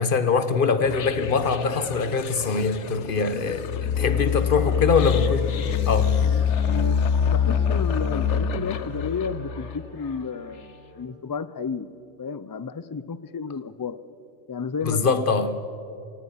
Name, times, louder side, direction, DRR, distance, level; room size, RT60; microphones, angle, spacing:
voice 1, 0.0-5.4 5.9-6.1 14.8-15.5, left 5 dB, 50° left, 1.2 m, -23 dB
sound 1, 0.8-10.1, left 7 dB, 80° left, 1.1 m, -25 dB
Wind instrument woodwind instrument, 3.9-11.4, right 1 dB, 55° right, 2.8 m, -47 dB
voice 2, 4.5-5.1 6.2-11.9 12.2-14.0 14.5-15.5, left 5 dB, 35° left, 0.3 m, -32 dB
25.0 x 18.5 x 5.8 m
omnidirectional pair, 1.2 m